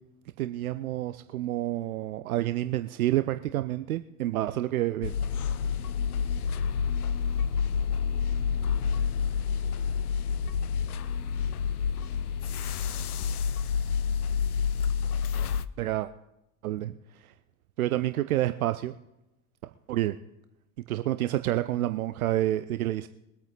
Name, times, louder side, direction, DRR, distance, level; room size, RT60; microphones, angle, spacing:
voice 1, 0.4-5.1 15.8-16.1 16.6-17.0 17.2-17.3 17.8-18.9 19.9-20.2 20.9-23.1, right 14 dB, 65° right, 11 dB, 0.7 m, -28 dB
sound 1, 5.0-15.7, left 6 dB, 70° left, 0.7 m, -28 dB
22.5 x 8.7 x 4.0 m, 0.89 s
figure-of-eight pair, 70°, 46 cm